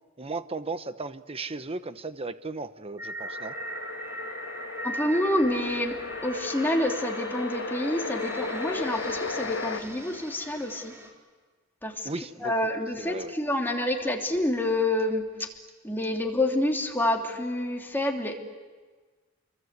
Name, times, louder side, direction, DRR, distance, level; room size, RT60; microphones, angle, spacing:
voice 1, 0.2-3.5 12.0-12.5 13.0-13.3, right 3 dB, 30° right, 11 dB, 1.0 m, -35 dB
sound 1, 3.0-11.1, right 1 dB, 15° right, 4.0 m, -39 dB
sound 2, 3.2-9.8, left 4 dB, 65° left, 1.5 m, -35 dB
voice 2, 4.8-5.9 6.2-10.9 11.8-12.1 12.4-15.2 15.8-18.4, left 1 dB, 10° left, 1 dB, 2.9 m, -28 dB
30.0 x 23.5 x 8.2 m, 1.4 s
head